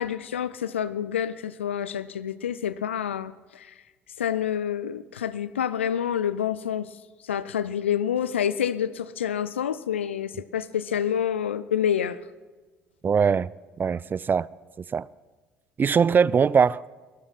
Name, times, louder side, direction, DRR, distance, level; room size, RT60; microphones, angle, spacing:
voice 1, 0.0-3.7 4.2-6.9 7.2-12.2, left 9 dB, 85° left, 0.4 m, -28 dB
voice 2, 13.0-13.5 13.8-14.5 14.8-15.1 15.8-16.9, right 6 dB, 30° right, 0.4 m, -21 dB
23.0 x 12.5 x 4.2 m
hypercardioid pair, 55°, 6 cm